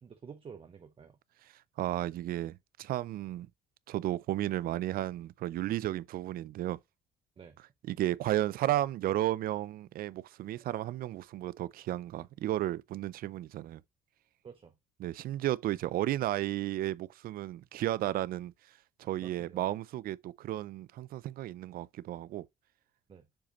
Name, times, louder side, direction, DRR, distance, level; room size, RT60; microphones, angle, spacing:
voice 1, 0.0-1.2 7.4-7.6 14.4-14.7 19.2-19.6 23.1-23.3, right 6 dB, 30° right, 0.9 m, -50 dB
voice 2, 1.8-3.5 3.9-6.8 7.9-13.8 15.0-18.5 19.0-22.5, right 14 dB, 60° right, 0.5 m, -33 dB
7.3 x 4.9 x 3.0 m
cardioid pair, 110°, 17 cm